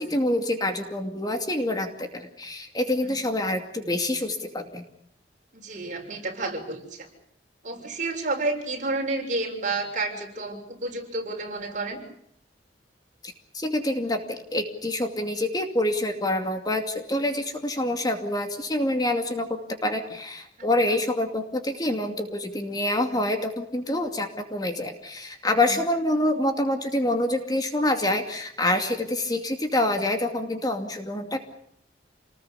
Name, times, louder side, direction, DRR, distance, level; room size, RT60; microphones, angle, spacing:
voice 1, 0.0-4.8 13.2-31.4, left 1 dB, 25° left, 5 dB, 2.5 m, -26 dB
voice 2, 5.5-7.1 7.6-12.0 20.6-20.7 25.7-25.8, right 2 dB, 45° right, 3 dB, 6.6 m, -30 dB
28.5 x 20.0 x 8.3 m, 0.73 s
head